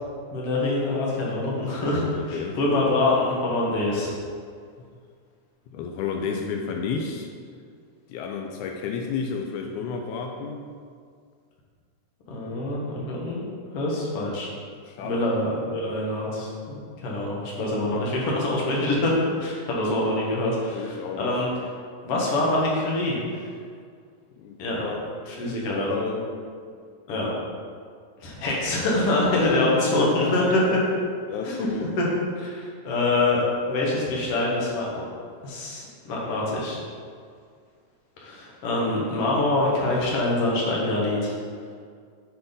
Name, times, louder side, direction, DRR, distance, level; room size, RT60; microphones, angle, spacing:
voice 1, 0.3-4.1 12.3-13.5 13.7-14.5 15.0-21.5 22.0-23.5 24.6-24.9 25.3-25.9 27.1-27.3 28.2-30.6 31.4-31.6 32.0-32.1 32.4-33.4 33.7-35.0 35.4-36.8 38.2-41.3, left 2 dB, 55° left, -4 dB, 1.9 m, -25 dB
voice 2, 2.1-2.6 5.7-7.3 8.1-10.6 14.9-15.2 17.9-18.0 20.7-21.3 24.4-24.6 24.8-25.1 25.4-26.3 29.5-30.5 31.3-31.9, left 5 dB, 90° left, 2 dB, 1.7 m, -31 dB
8.2 x 3.9 x 5.2 m, 2.1 s
omnidirectional pair, 4.0 m